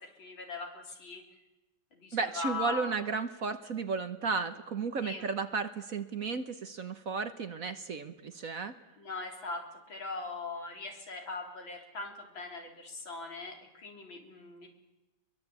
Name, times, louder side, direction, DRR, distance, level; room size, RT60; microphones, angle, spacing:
voice 1, 0.2-1.2 2.0-2.9 5.0-5.3 9.0-9.6 9.9-14.7, left 4 dB, 75° left, 2 dB, 4.3 m, -40 dB
voice 2, 2.1-8.7, right 5 dB, 50° right, 9 dB, 1.3 m, -34 dB
24.0 x 22.5 x 8.5 m, 1.0 s
omnidirectional pair, 2.2 m